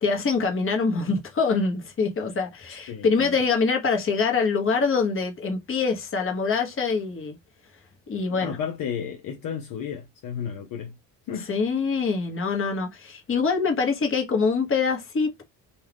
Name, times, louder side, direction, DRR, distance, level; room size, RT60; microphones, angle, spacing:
voice 1, 0.0-7.4 8.1-8.6 11.5-15.4, left 4 dB, 30° left, 1.1 m, -24 dB
voice 2, 2.9-3.4 8.4-11.0 11.3-11.5, left 7 dB, 55° left, 0.8 m, -33 dB
2.7 x 2.4 x 3.3 m
cardioid pair, 95°, 40 cm